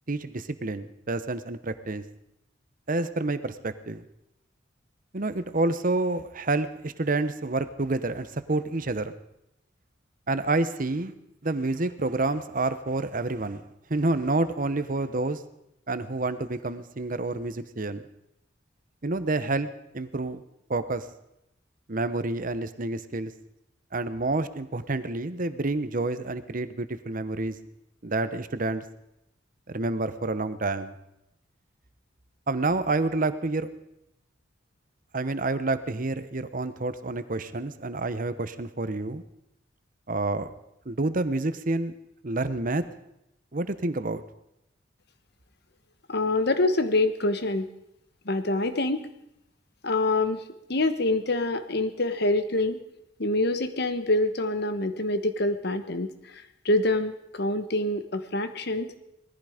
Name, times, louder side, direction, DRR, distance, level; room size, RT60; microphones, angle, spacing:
voice 1, 0.1-2.0 2.9-4.0 5.1-9.1 10.3-11.1 11.4-13.6 13.9-15.4 15.9-18.0 19.0-19.7 19.9-20.4 20.7-21.1 21.9-23.3 23.9-27.6 28.0-28.8 29.7-30.9 32.5-33.7 35.1-39.2 40.1-40.5 40.9-41.9 42.2-42.9 43.5-44.2, right 2 dB, 45° right, 12 dB, 0.9 m, -28 dB
voice 2, 46.1-47.7 48.2-49.1 49.8-50.4 50.7-52.8 53.2-58.9, left 2 dB, 55° left, 10 dB, 1.2 m, -26 dB
19.5 x 14.5 x 5.1 m, 0.84 s
head